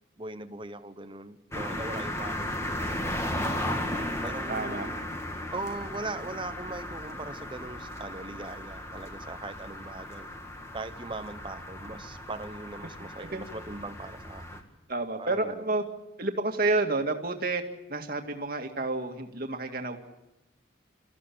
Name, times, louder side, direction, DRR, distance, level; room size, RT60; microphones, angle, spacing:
voice 1, 0.2-3.7 4.2-4.9 5.5-10.3 10.7-14.6 15.2-15.7, right 2 dB, 25° right, 11 dB, 1.0 m, -40 dB
sound 1, 1.5-14.6, left 1 dB, 15° left, 2.1 m, -36 dB
voice 2, 4.5-4.9 13.3-13.4 14.9-15.8 16.2-17.6 17.9-20.0, right 2 dB, 50° right, 4 dB, 2.1 m, -29 dB
27.0 x 14.5 x 8.7 m, 0.96 s
head